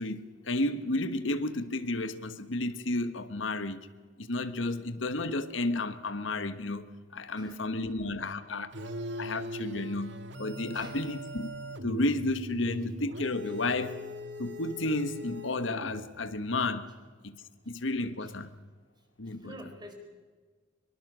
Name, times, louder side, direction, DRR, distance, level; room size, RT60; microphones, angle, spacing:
voice 1, 0.0-3.8 4.2-8.7 9.2-11.5 11.8-14.0 14.4-16.9 17.2-18.5 19.2-19.5, left 2 dB, 90° left, 1.4 m, -32 dB
voice 2, 7.4-8.5 8.9-9.2 10.1-10.2 10.7-11.0 18.2-18.3 19.3-19.9, equal, 20° right, 4.4 m, -50 dB
sound 1, 8.7-16.2, equal, 70° right, 1.9 m, -41 dB
24.5 x 23.0 x 6.3 m
head